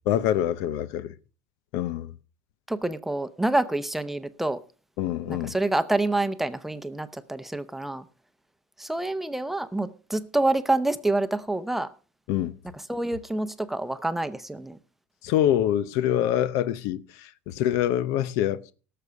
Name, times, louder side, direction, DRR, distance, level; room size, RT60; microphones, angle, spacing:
voice 1, 0.1-1.1 1.7-2.1 5.0-5.6 12.3-12.5 15.2-18.6, left 11 dB, 75° left, 0.7 m, -25 dB
voice 2, 2.7-4.6 5.3-8.0 8.8-11.9 12.9-14.8, right 2 dB, 5° right, 0.7 m, -27 dB
17.5 x 6.8 x 4.6 m
cardioid pair, 125°, 6 cm